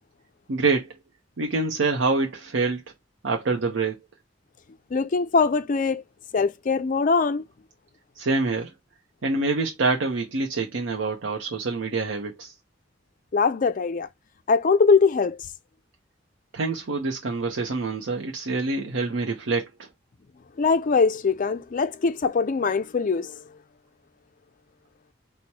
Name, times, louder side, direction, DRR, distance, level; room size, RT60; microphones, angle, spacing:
voice 1, 0.5-0.9 1.4-2.8 3.2-4.0 8.2-8.7 9.2-12.5 16.5-19.9, right 3 dB, 85° right, 0.7 m, -26 dB
voice 2, 4.9-6.0 6.3-7.4 13.3-14.1 14.5-15.4 20.6-23.4, left 4 dB, 45° left, 0.4 m, -22 dB
4.3 x 2.2 x 4.5 m
head